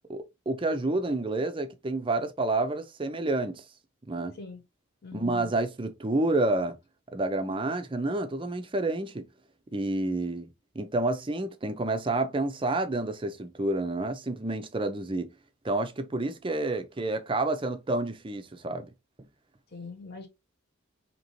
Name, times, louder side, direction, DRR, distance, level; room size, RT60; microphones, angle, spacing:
voice 1, 0.1-3.6 4.1-4.4 5.1-6.8 7.1-9.3 9.7-10.5 10.7-15.3 15.6-18.9, right 2 dB, 25° right, 0.5 m, -29 dB
voice 2, 5.0-5.4 19.7-20.3, left 4 dB, 50° left, 1.1 m, -42 dB
3.9 x 2.9 x 3.0 m
head